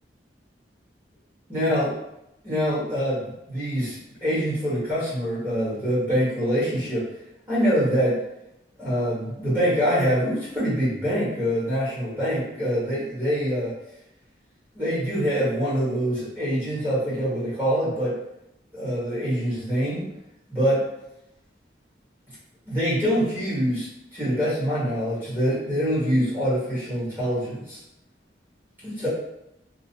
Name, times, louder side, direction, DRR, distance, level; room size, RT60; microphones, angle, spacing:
voice 1, 1.5-1.9 2.4-7.1 7.5-8.2 8.8-13.7 14.7-18.1 18.7-20.1 20.5-20.8 22.7-27.8 28.8-29.1, equal, 10° right, -10 dB, 1.2 m, -25 dB
2.9 x 2.1 x 2.8 m, 0.84 s
head